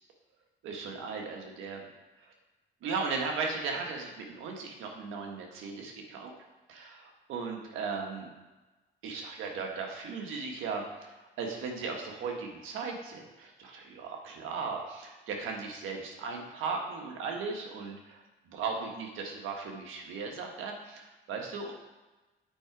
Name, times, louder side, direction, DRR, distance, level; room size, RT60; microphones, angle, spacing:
voice 1, 0.6-1.9 2.8-6.3 6.7-8.3 9.0-18.2 18.5-21.7, right 4 dB, 90° right, 1 dB, 1.4 m, -37 dB
8.9 x 4.9 x 4.7 m, 1.1 s
cardioid pair, 90°, 20 cm